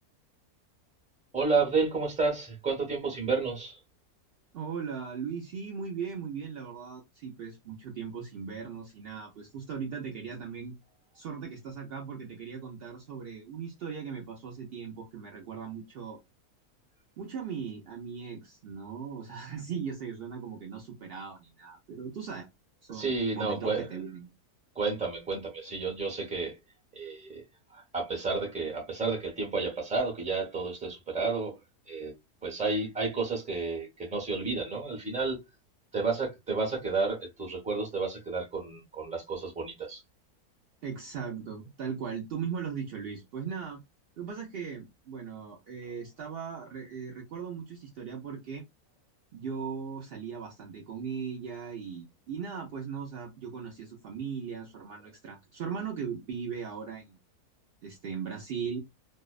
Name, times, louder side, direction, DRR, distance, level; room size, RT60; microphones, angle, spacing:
voice 1, 1.3-3.8 22.9-23.9 24.7-26.6 26.9-27.4 27.7-31.6 31.9-32.2 32.4-35.4 35.9-40.0, right 4 dB, 5° right, 0.6 m, -31 dB
voice 2, 4.5-10.7 11.1-16.2 17.2-22.5 22.8-24.3 40.8-43.8 44.2-48.6 49.3-57.2 57.8-58.8, right 6 dB, 85° right, 0.5 m, -38 dB
2.6 x 2.1 x 2.3 m
omnidirectional pair, 1.6 m